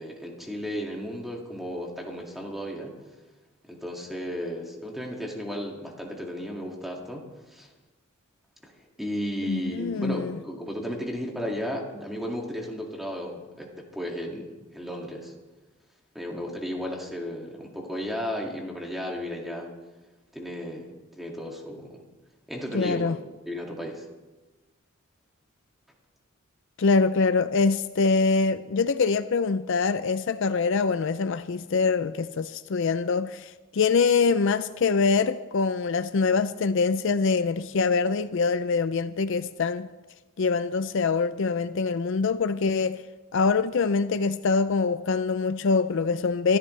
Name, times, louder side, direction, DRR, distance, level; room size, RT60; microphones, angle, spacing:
voice 1, 0.0-2.9 3.7-7.7 8.6-8.7 9.0-15.3 16.1-19.7 20.3-22.0 22.5-23.1 23.5-24.0, equal, ahead, 2.1 m, -34 dB
voice 2, 9.4-10.4 22.7-23.2 26.8-39.9 40.4-43.0 43.3-46.6, left 4 dB, 60° left, 0.4 m, -24 dB
24.5 x 13.5 x 3.3 m
head